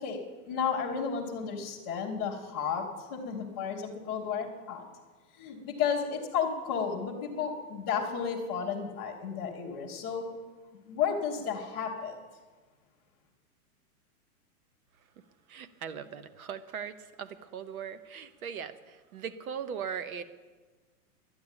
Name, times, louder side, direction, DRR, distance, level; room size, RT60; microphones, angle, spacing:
voice 1, 0.5-4.9 5.4-10.2 10.9-12.1, left 6 dB, 10° left, -11 dB, 0.4 m, -32 dB
voice 2, 15.5-20.2, right 7 dB, 70° right, 13 dB, 1.0 m, -39 dB
11.5 x 9.6 x 8.8 m, 1.4 s
supercardioid pair, 170°, 45 cm